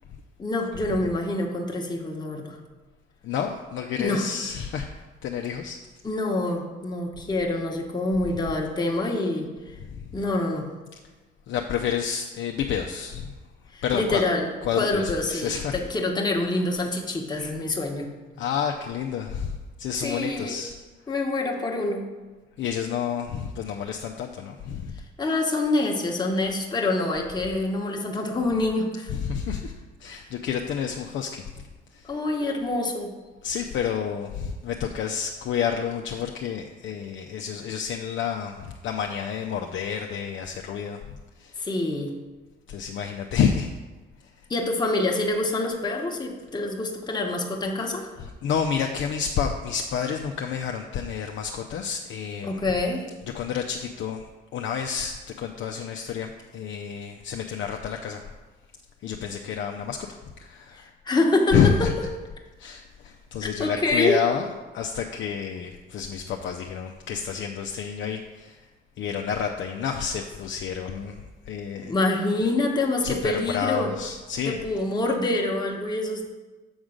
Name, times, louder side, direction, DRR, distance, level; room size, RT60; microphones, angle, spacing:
voice 1, 0.4-2.6 4.0-4.3 6.0-9.8 10.1-10.7 13.7-14.5 14.8-18.1 18.3-18.4 20.0-20.6 21.1-22.1 25.2-29.1 32.0-33.1 41.6-42.1 44.5-48.1 52.4-53.1 60.7-61.6 63.4-64.2 71.8-73.9 74.5-76.3, left 2 dB, 20° left, 0 dB, 1.1 m, -26 dB
voice 2, 3.2-4.9 5.2-5.8 9.8-10.0 11.5-13.3 13.8-14.2 14.6-15.8 17.4-17.5 18.4-20.8 22.6-25.0 29.1-29.7 30.0-32.1 33.4-41.7 42.7-43.7 44.2-44.3 48.4-52.6 53.2-54.3 54.5-58.2 59.0-60.0 60.4-60.9 61.5-61.9 62.6-64.5 64.7-68.6 69.0-71.9 73.0-74.6, left 7 dB, 70° left, 3 dB, 0.6 m, -29 dB
7.1 x 3.7 x 6.3 m, 1.2 s
cardioid pair, 90°, 20 cm